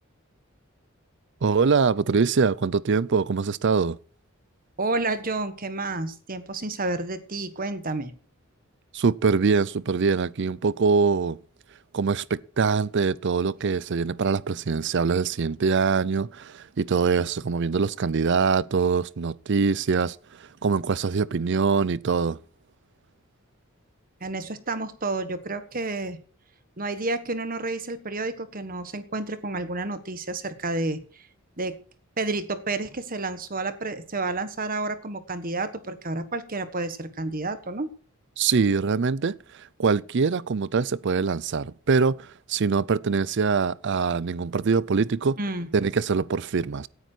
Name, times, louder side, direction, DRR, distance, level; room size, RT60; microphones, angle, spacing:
voice 1, 1.4-4.0 8.9-11.4 11.9-20.2 20.6-22.4 38.4-39.4 39.8-45.4 45.7-46.9, right 5 dB, 55° right, 0.5 m, -23 dB
voice 2, 4.8-8.1 24.2-26.2 26.8-31.3 31.6-31.8 32.2-37.9 45.4-45.7, right 2 dB, 40° right, 1.3 m, -30 dB
17.0 x 9.6 x 4.5 m
head